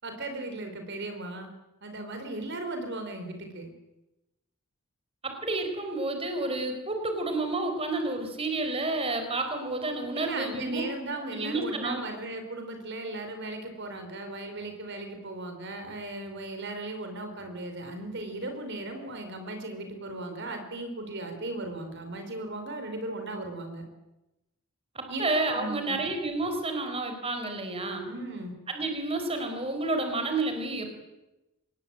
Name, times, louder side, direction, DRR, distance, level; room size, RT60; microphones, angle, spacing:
voice 1, 0.0-1.5 1.8-3.7 10.1-23.8 25.1-25.3 25.5-26.0 28.0-28.5, right 2 dB, 55° right, 6 dB, 4.5 m, -37 dB
voice 2, 5.2-10.8 11.3-12.0 24.9-28.0 28.7-31.0, right 2 dB, 30° right, 6 dB, 4.6 m, -30 dB
26.0 x 20.0 x 9.0 m, 0.98 s
head